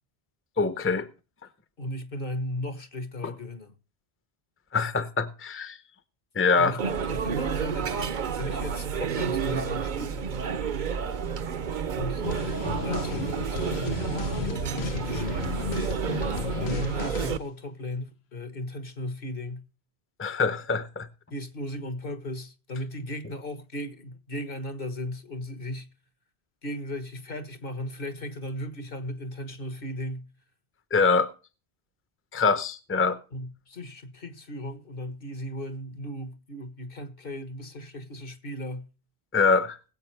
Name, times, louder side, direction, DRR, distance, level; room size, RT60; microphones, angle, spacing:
voice 1, 0.6-1.1 3.2-3.3 4.7-5.8 6.3-6.8 20.2-21.1 30.9-31.3 32.3-33.2 39.3-39.8, left 4 dB, 15° left, 0.7 m, -24 dB
voice 2, 1.8-3.7 6.6-10.3 11.9-12.2 12.8-15.6 16.6-19.7 21.3-25.9 26.6-30.3 33.3-38.9, left 1 dB, 60° left, 1.7 m, -36 dB
sound 1, 6.8-17.4, right 6 dB, 50° right, 0.8 m, -30 dB
sound 2, 12.2-17.4, left 8 dB, 85° left, 1.2 m, -34 dB
21.0 x 8.2 x 3.3 m
omnidirectional pair, 1.0 m